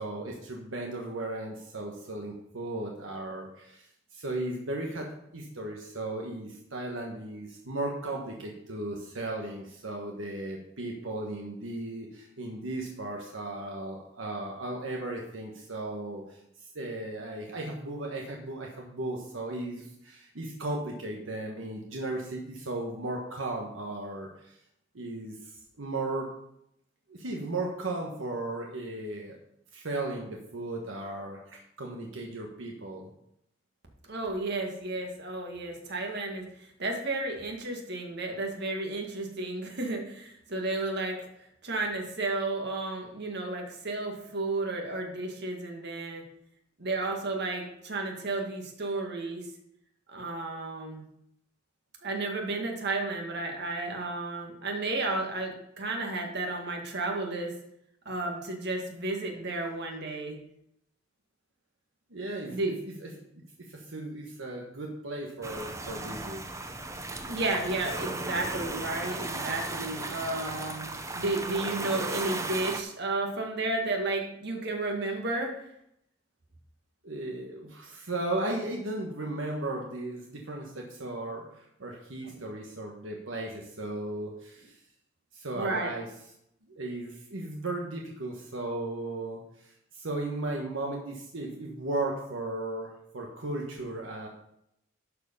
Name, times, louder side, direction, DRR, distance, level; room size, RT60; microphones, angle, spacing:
voice 1, 0.0-3.9 4.1-24.6 24.9-26.3 27.1-29.4 29.7-33.1 62.1-63.2 63.7-66.4 77.0-84.8 85.3-86.1 86.7-94.3, right 2 dB, 85° right, 0 dB, 1.3 m, -36 dB
voice 2, 34.1-41.2 41.6-46.2 46.8-49.5 50.1-51.0 52.0-57.5 58.1-60.4 62.5-62.8 67.3-75.5 82.2-82.4 85.5-85.9, right 2 dB, 60° right, 1 dB, 1.9 m, -32 dB
sound 1, 65.4-72.8, right 2 dB, 15° right, 0.7 m, -36 dB
11.5 x 4.8 x 5.5 m, 0.77 s
head